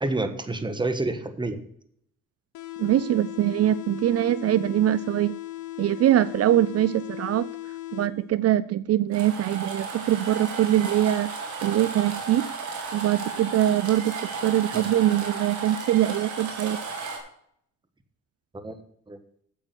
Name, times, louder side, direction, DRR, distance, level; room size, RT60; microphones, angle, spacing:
voice 1, 0.0-1.6 14.7-14.8 18.5-18.7 19.1-19.2, right 2 dB, 15° right, 1.3 m, -28 dB
sound 1, 2.5-8.5, left 17 dB, 80° left, 0.8 m, -37 dB
voice 2, 2.8-5.4 5.8-7.5 7.9-11.3 11.6-12.5 12.9-16.8, right 12 dB, 55° right, 0.4 m, -23 dB
sound 2, 9.1-17.2, right 4 dB, 70° right, 2.6 m, -34 dB
9.0 x 7.4 x 6.0 m
cardioid pair, 90°, 30 cm